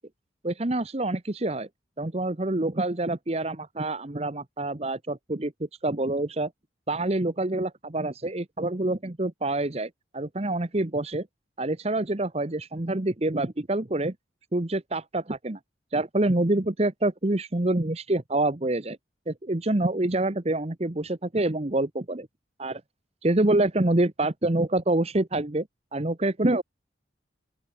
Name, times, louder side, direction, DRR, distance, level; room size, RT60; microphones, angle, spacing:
voice 1, 0.4-1.7 2.0-5.5 5.8-6.5 6.9-11.3 11.6-14.1 14.5-15.6 15.9-19.0 19.3-22.3 22.6-22.8 23.2-25.7 25.9-26.6, right 2 dB, 35° right, 1.0 m, -26 dB
open air
head